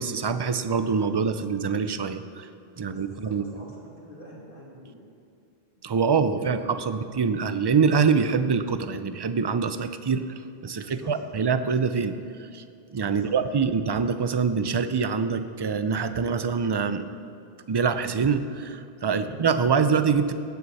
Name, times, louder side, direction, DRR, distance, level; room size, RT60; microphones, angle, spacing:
voice 1, 0.0-2.5 2.8-3.4 5.8-10.3 10.6-12.1 12.5-12.6 12.9-17.1 17.7-20.3, right 5 dB, 35° right, 10 dB, 0.4 m, -25 dB
voice 2, 2.9-5.0 5.8-6.5 10.6-11.2 13.0-13.3 19.1-19.3, equal, 60° left, -4 dB, 2.7 m, -47 dB
17.0 x 9.4 x 4.1 m, 2.5 s
omnidirectional pair, 1.0 m